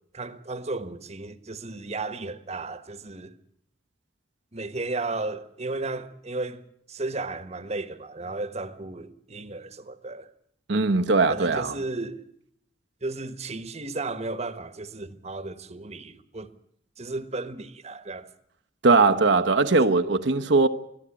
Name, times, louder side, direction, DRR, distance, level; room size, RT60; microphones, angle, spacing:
voice 1, 0.1-3.4 4.5-10.3 11.3-12.3 13.0-16.5 17.0-18.3, right 3 dB, 35° right, 1.3 m, -34 dB
voice 2, 10.7-11.7 18.8-20.7, right 3 dB, 70° right, 1.0 m, -20 dB
22.0 x 14.0 x 9.8 m
head